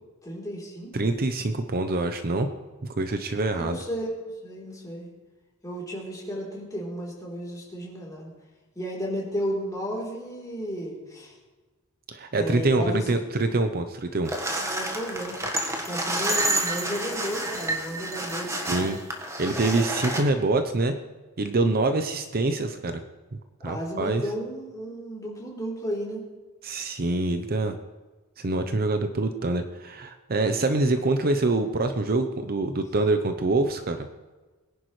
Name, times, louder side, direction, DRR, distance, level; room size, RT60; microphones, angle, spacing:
voice 1, 0.2-0.9 3.4-4.1 4.4-5.1 5.6-8.3 8.8-11.3 12.4-13.2 14.6-15.4 15.9-18.9 23.6-26.2, equal, 15° left, -4 dB, 3.6 m, -33 dB
voice 2, 0.9-2.5 2.8-3.8 12.1-14.3 18.7-19.0 19.4-20.9 21.4-23.0 23.6-24.2 26.6-27.8 28.4-34.1, right 2 dB, 45° right, 7 dB, 0.8 m, -25 dB
sound 1, 14.3-20.2, right 1 dB, 15° right, 1.4 m, -29 dB
22.5 x 10.5 x 3.2 m, 1.2 s
head